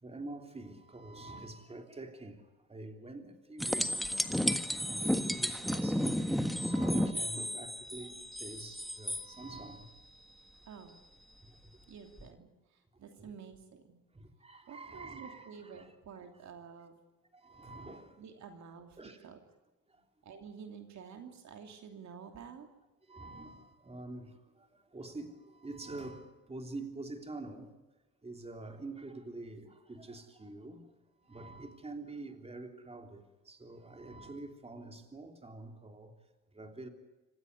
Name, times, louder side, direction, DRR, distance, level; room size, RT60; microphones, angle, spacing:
voice 1, 0.0-10.0 11.4-11.7 13.2-13.3 14.1-15.9 17.3-18.2 19.0-19.3 19.9-20.0 23.0-27.7 28.2-30.9 31.2-36.1 36.5-36.9, right 2 dB, 20° right, 3.4 m, -46 dB
sound 1, 3.6-9.2 12.2-12.3, equal, ahead, 1.4 m, -32 dB
voice 2, 10.4-11.0 11.9-14.0 14.7-17.0 18.2-19.0 19.2-19.4 20.2-22.7, right 6 dB, 65° right, 2.9 m, -50 dB
26.5 x 15.5 x 9.7 m
cardioid pair, 90°, 30 cm